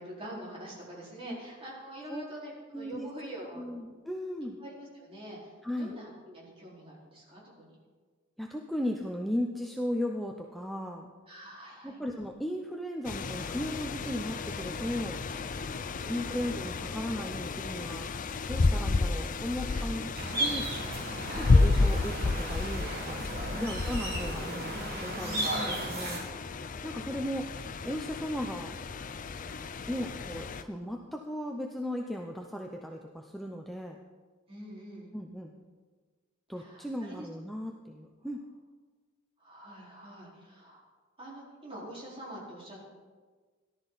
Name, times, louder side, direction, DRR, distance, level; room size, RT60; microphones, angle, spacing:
voice 1, 0.0-3.7 4.6-5.5 5.8-7.7 11.3-12.0 15.8-16.3 19.7-19.9 20.4-20.7 21.2-21.6 23.5-23.8 25.2-25.8 34.5-35.1 36.6-37.3 39.4-40.8 41.2-42.8, right 1 dB, 30° right, -6 dB, 4.7 m, -45 dB
voice 2, 2.7-4.6 5.6-6.0 8.4-11.1 11.8-15.2 16.0-18.1 18.5-20.7 21.4-23.2 23.5-26.2 26.8-27.6 27.8-28.8 29.9-34.0 35.1-35.5 36.5-38.4, equal, ahead, 1 dB, 0.7 m, -36 dB
sound 1, 13.0-30.6, left 3 dB, 40° left, 0.5 m, -31 dB
sound 2, 20.1-26.2, right 1 dB, 50° right, 4.3 m, -35 dB
17.5 x 12.0 x 4.1 m, 1.4 s
head